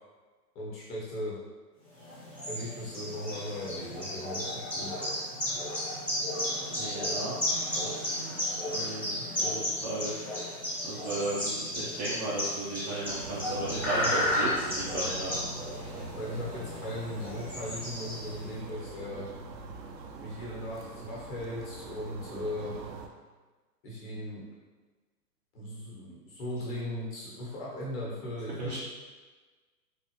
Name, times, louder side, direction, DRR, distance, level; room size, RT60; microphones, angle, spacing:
voice 1, 0.5-1.4 2.5-4.9 15.9-19.3 20.2-22.8 23.8-24.5 25.5-28.8, left 1 dB, 25° left, -6 dB, 1.2 m, -38 dB
sound 1, 2.0-18.5, left 1 dB, 5° left, 0.9 m, -33 dB
voice 2, 6.7-7.4 7.8-8.4 8.7-10.4 10.8-15.4 28.6-28.8, right 2 dB, 25° right, -8 dB, 0.5 m, -35 dB
sound 2, 13.0-23.1, right 3 dB, 85° right, 0.6 m, -43 dB
4.0 x 2.5 x 2.9 m, 1.3 s
hypercardioid pair, 120°, 50 cm